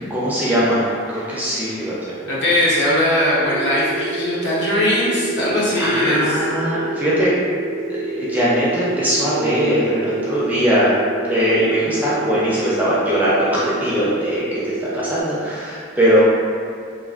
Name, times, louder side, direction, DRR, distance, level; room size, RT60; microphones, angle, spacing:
voice 1, 0.1-2.2 5.8-7.3 7.9-11.0 11.2-16.2, equal, 10° right, -9 dB, 0.4 m, -20 dB
voice 2, 2.2-6.5, left 1 dB, 60° left, -8 dB, 0.7 m, -19 dB
sound 1, 3.4-15.2, right 2 dB, 80° right, 0.4 m, -28 dB
3.2 x 2.2 x 2.4 m, 2.2 s
head